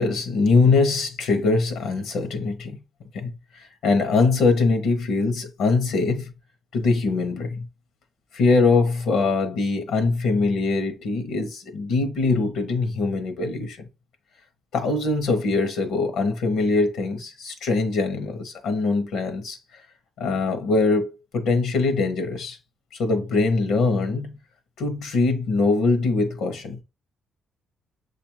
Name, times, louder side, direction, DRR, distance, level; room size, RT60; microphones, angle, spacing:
voice 1, 0.0-2.7 3.1-3.3 3.8-6.3 6.7-7.6 8.3-13.8 14.7-19.6 20.2-22.6 23.0-24.3 24.8-26.8, left 3 dB, 80° left, 0.9 m, -22 dB
6.6 x 2.5 x 2.9 m
cardioid pair, 90°, 0 cm